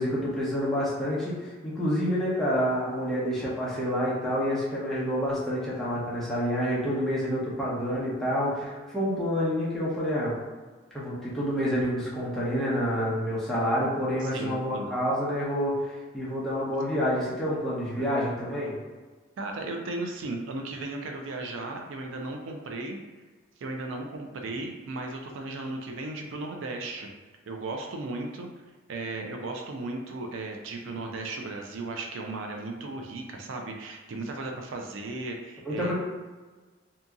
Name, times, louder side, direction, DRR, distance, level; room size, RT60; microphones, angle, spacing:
voice 1, 0.0-10.4 10.9-18.8 35.6-35.9, equal, ahead, -8 dB, 0.7 m, -28 dB
voice 2, 14.2-14.9 18.0-18.1 19.4-23.0 23.6-27.1 27.5-28.5 28.9-35.9, right 2 dB, 75° right, 2 dB, 0.4 m, -36 dB
2.7 x 2.6 x 2.3 m, 1.3 s
head